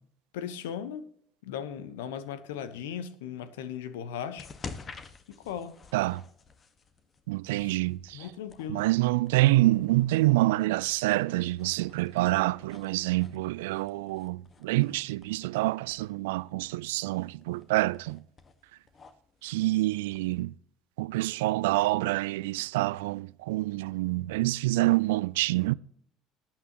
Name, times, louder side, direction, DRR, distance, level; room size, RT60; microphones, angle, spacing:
voice 1, 0.3-1.1 1.4-4.5 5.3-5.8 7.6-7.8 8.1-8.8, left 8 dB, 80° left, 1.0 m, -37 dB
sound 1, 4.4-20.2, left 4 dB, 35° left, 1.5 m, -50 dB
voice 2, 5.9-6.2 7.3-8.2 8.7-18.2 19.4-20.5 21.0-25.7, right 18 dB, 75° right, 0.3 m, -27 dB
18.0 x 8.8 x 3.0 m
hypercardioid pair, 65°, 0 cm